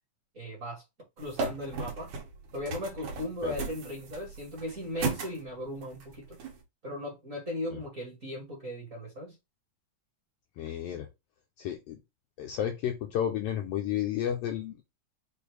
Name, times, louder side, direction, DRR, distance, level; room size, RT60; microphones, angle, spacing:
voice 1, 0.3-0.8 1.2-2.1 2.5-6.4 6.8-9.3, left 1 dB, 40° right, 1.3 m, -37 dB
sound 1, 1.2-6.6, right 4 dB, 85° right, 2.6 m, -37 dB
voice 2, 10.6-11.1 11.6-12.0 12.4-14.8, left 10 dB, 80° left, 1.5 m, -32 dB
6.4 x 2.5 x 3.2 m
omnidirectional pair, 3.3 m